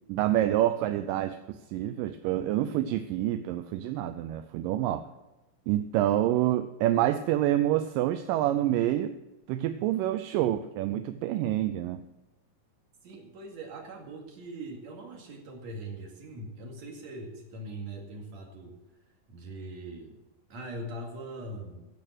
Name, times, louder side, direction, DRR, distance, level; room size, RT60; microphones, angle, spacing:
voice 1, 0.1-5.1 5.7-9.2 9.5-12.0, right 13 dB, 80° right, 10 dB, 2.1 m, -27 dB
voice 2, 13.0-18.8 19.3-20.2 20.5-21.9, right 1 dB, 50° right, 2 dB, 3.2 m, -41 dB
16.0 x 7.7 x 6.2 m, 1.0 s
omnidirectional pair, 4.1 m